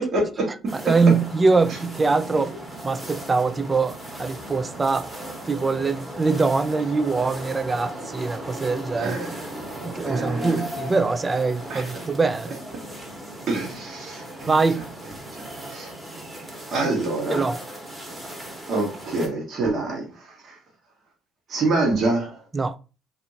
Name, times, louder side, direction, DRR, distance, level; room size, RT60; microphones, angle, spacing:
voice 1, 0.0-0.7 1.7-1.8 8.9-9.5 10.0-10.9 11.7-12.0 13.5-14.8 15.3-15.9 16.7-17.4 18.7-20.6 21.5-22.4, right 2 dB, 50° right, 1.2 m, -27 dB
sound 1, 0.7-19.3, right 1 dB, 15° right, 1.3 m, -37 dB
voice 2, 0.7-2.5 2.8-5.1 5.5-9.2 9.8-12.6 14.5-14.9 16.8-16.9 17.3-17.6 22.5-22.8, right 4 dB, 30° right, 0.3 m, -23 dB
2.7 x 2.5 x 2.8 m
hypercardioid pair, 65°, 0 cm